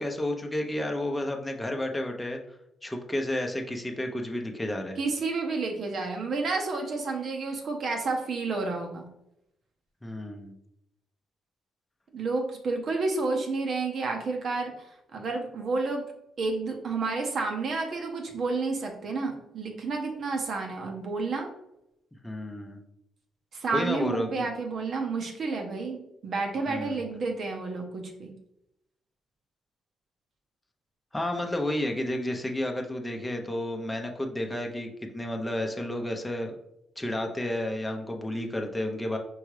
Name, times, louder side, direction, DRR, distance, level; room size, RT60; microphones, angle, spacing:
voice 1, 0.0-2.4 2.8-5.0 10.0-10.5 22.2-22.8 23.7-24.5 26.7-27.1 31.1-36.6 37.0-39.2, left 1 dB, 10° left, 2 dB, 0.7 m, -31 dB
voice 2, 5.0-9.1 12.1-16.0 16.4-21.5 23.5-28.3, right 3 dB, 55° right, 2 dB, 0.9 m, -30 dB
4.7 x 3.5 x 3.2 m, 0.81 s
cardioid pair, 90°, 0 cm